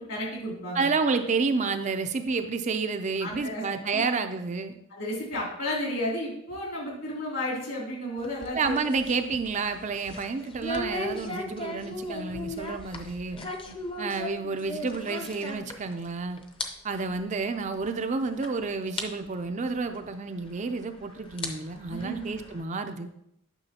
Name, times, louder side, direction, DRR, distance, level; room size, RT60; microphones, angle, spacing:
voice 1, 0.0-0.9 3.2-3.6 3.9-4.1 4.9-8.7 13.3-13.7 21.9-22.3, left 1 dB, 65° left, -4 dB, 3.2 m, -33 dB
voice 2, 0.7-4.7 8.5-13.4 14.0-16.4 16.8-23.1, right 4 dB, 30° right, 7 dB, 0.4 m, -30 dB
sound 1, 8.2-16.1 16.4-16.7 17.0-17.1 17.8-17.9 18.4-18.5 19.0-19.1 20.4-20.5 21.2-22.6, left 1 dB, 25° left, 0.7 m, -37 dB
9.8 x 6.0 x 2.8 m, 0.76 s
head